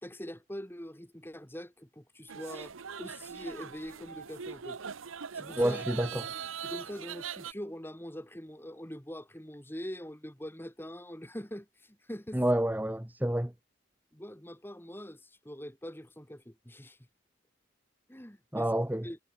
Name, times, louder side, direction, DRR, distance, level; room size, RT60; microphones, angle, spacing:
voice 1, 0.0-4.8 5.3-5.8 6.6-12.4 12.9-13.0 14.1-17.0 18.1-18.7 19.0-19.2, equal, 10° left, 2.9 m, -43 dB
sound 1, 2.3-7.5, right 7 dB, 90° right, 0.9 m, -41 dB
voice 2, 5.6-6.2 12.3-13.5 18.5-19.1, right 1 dB, 10° right, 0.9 m, -28 dB
head